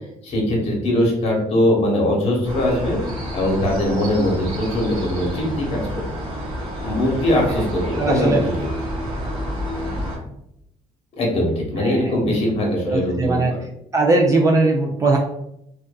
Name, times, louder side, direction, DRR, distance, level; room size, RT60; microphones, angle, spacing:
voice 1, 0.2-3.0 3.3-6.0 6.8-8.4 11.2-13.4, left 1 dB, 50° left, -1 dB, 0.9 m, -21 dB
sound 1, 2.4-10.2, equal, 40° right, 0.9 m, -29 dB
voice 2, 8.0-8.4 11.8-12.0 12.9-13.5 13.9-15.2, right 3 dB, 25° right, -1 dB, 0.3 m, -19 dB
2.5 x 2.3 x 2.2 m, 0.79 s
cardioid pair, 105°, 13 cm